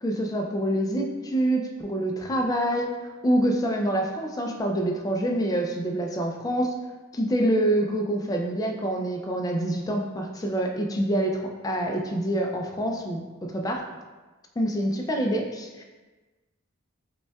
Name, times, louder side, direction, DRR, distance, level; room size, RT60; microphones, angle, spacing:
voice 1, 0.0-2.9 3.2-6.7 7.1-13.9 14.6-15.8, right 1 dB, 20° left, 2 dB, 0.3 m, -26 dB
5.2 x 2.2 x 2.2 m, 1.2 s
head